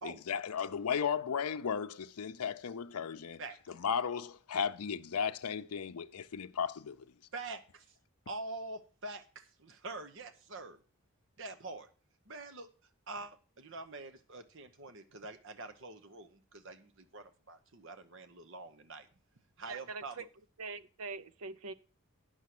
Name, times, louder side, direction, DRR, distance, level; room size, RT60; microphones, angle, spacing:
voice 1, 0.0-3.4 3.8-7.0, left 7 dB, 85° left, 0.5 m, -35 dB
voice 2, 7.3-7.8 8.3-10.8 11.4-11.9 12.3-12.7 13.1-19.1 19.6-20.3, right 3 dB, 55° right, 1.0 m, -45 dB
voice 3, 19.6-20.3 20.6-21.7, right 4 dB, 75° right, 0.6 m, -43 dB
9.7 x 6.3 x 6.0 m
head